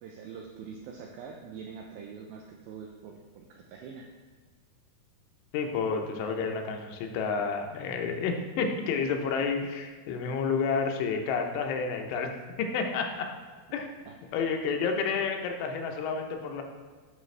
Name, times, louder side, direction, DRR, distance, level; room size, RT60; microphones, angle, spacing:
voice 1, 0.0-4.1 14.1-14.2, right 6 dB, 85° right, 1 dB, 2.1 m, -44 dB
voice 2, 5.5-12.3 12.6-13.3 13.7-13.9 14.3-16.6, left 5 dB, 85° left, 4 dB, 2.9 m, -30 dB
9.1 x 5.6 x 3.2 m, 1.5 s
omnidirectional pair, 4.9 m